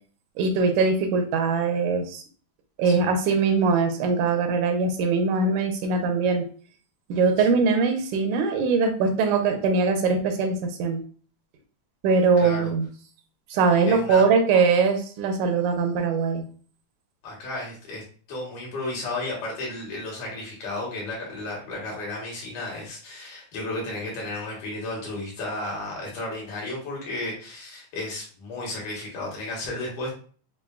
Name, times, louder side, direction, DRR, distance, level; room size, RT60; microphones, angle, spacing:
voice 1, 0.4-2.2 2.8-6.4 7.1-11.0 12.0-12.9 13.5-16.4, right 4 dB, 80° right, 5 dB, 2.2 m, -22 dB
voice 2, 12.4-12.7 13.9-14.2 17.2-18.0 18.3-30.2, left 2 dB, 85° left, -3 dB, 3.2 m, -33 dB
6.7 x 2.7 x 2.3 m, 0.43 s
omnidirectional pair, 3.5 m